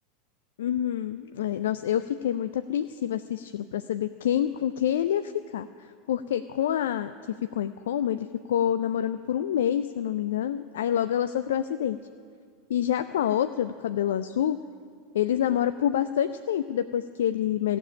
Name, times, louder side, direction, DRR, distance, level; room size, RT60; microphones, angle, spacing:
voice 1, 0.6-5.7 6.1-7.1 7.5-12.0 12.7-14.6 15.1-17.8, left 10 dB, 70° left, 11 dB, 0.3 m, -27 dB
15.0 x 7.1 x 9.9 m, 2.2 s
figure-of-eight pair, 85°, 0 cm